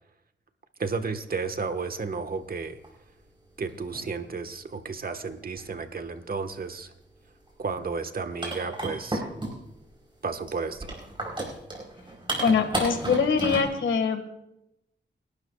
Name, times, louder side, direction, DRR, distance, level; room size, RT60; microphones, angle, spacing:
voice 1, 0.8-2.8 3.6-6.9 7.6-9.2 10.2-10.9, right 4 dB, 50° right, 8 dB, 1.3 m, -32 dB
sound 1, 1.3-1.4 2.8-2.9 3.7-4.2 5.4-5.7 7.5-7.6 7.8-7.9 8.4-9.8 10.5-13.6, right 1 dB, 25° right, 4.7 m, -33 dB
voice 2, 12.4-14.3, left 5 dB, 90° left, 7 dB, 1.7 m, -23 dB
29.0 x 12.0 x 2.3 m, 0.85 s
cardioid pair, 70°, 19 cm